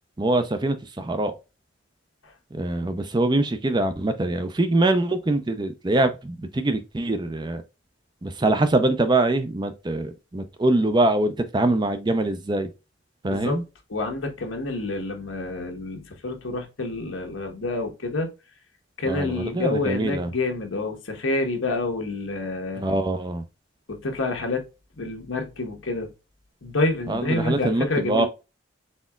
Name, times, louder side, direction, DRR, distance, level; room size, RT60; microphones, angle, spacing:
voice 1, 0.2-1.3 2.5-7.6 8.2-12.7 13.2-13.6 19.1-20.3 22.8-23.4 27.1-28.3, right 2 dB, 20° right, 0.4 m, -23 dB
voice 2, 13.2-13.6 13.9-18.3 19.0-22.8 23.9-24.7 25.0-26.1 26.6-28.3, left 2 dB, 85° left, 1.2 m, -28 dB
4.3 x 4.0 x 2.3 m
head